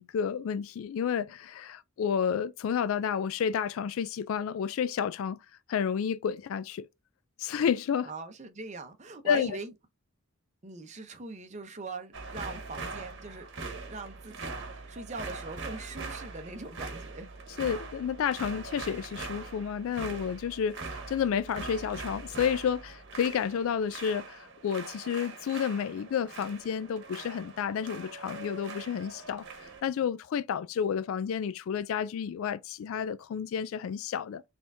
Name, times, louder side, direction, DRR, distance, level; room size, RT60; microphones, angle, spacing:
voice 1, 0.0-5.4 5.7-6.9 7.4-8.1 9.3-9.6 17.6-34.4, left 7 dB, 70° left, 0.3 m, -31 dB
voice 2, 8.0-9.7 10.6-17.3, right 3 dB, 30° right, 0.7 m, -42 dB
sound 1, 12.1-29.8, right 3 dB, 55° right, 1.1 m, -42 dB
4.3 x 3.5 x 2.6 m
head